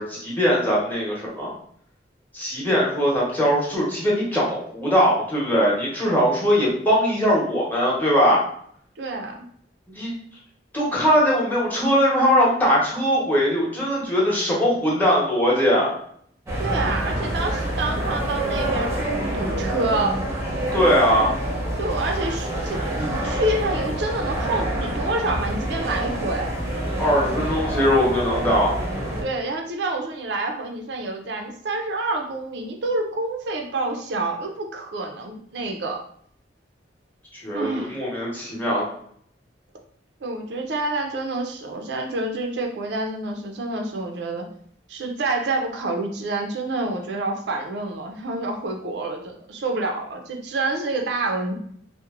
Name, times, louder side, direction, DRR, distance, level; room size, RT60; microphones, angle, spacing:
voice 1, 0.0-1.5 2.3-8.4 9.9-10.1 10.7-15.9 20.7-21.3 27.0-28.7 37.4-38.8, equal, 10° left, -6 dB, 0.8 m, -20 dB
voice 2, 9.0-9.4 16.6-20.2 21.8-26.5 29.2-36.0 37.5-38.0 40.2-44.5 44.9-51.5, right 2 dB, 70° right, 3 dB, 0.4 m, -28 dB
sound 1, 16.5-29.2, right 1 dB, 15° right, 0.6 m, -27 dB
2.9 x 2.0 x 2.3 m, 0.63 s
head